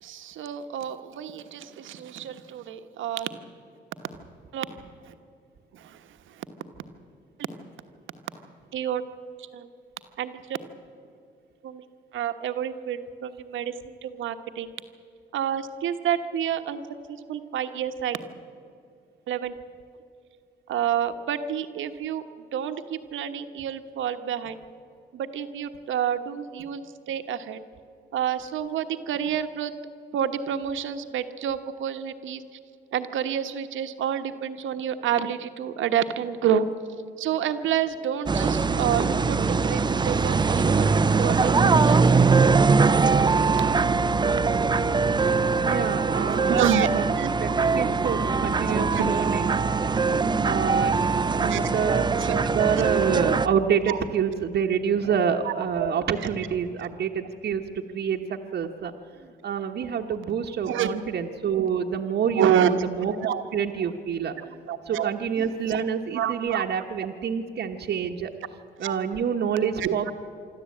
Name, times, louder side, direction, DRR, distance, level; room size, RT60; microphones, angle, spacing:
voice 1, 0.0-3.3 4.5-4.7 5.1-5.2 5.7-6.4 8.7-9.0 9.5-9.7 10.2-10.6 11.6-11.8 12.1-14.7 15.3-16.8 17.1-18.2 19.3-19.5 20.7-22.2 22.5-24.6 25.1-27.6 28.1-29.7 30.1-32.4 32.9-36.7 37.2-42.1 46.5-46.9 47.2-47.3 48.7-49.1 51.5-51.6 52.2-52.5 53.9-54.0 55.1-55.2 55.4-55.9 60.7-60.9 62.4-62.7 63.2-63.4 64.7-65.1 65.4-65.8 66.1-66.6 68.8-68.9 69.8-70.1, right 9 dB, 75° right, 9 dB, 1.3 m, -28 dB
Ice cream car NY, 38.3-53.5, right 4 dB, 20° right, 0.6 m, -22 dB
voice 2, 45.6-49.6 50.4-51.0 51.4-52.2 52.5-68.3 68.8-70.1, right 7 dB, 60° right, 2 dB, 1.1 m, -27 dB
25.0 x 13.0 x 8.6 m, 2.5 s
cardioid pair, 90°, 20 cm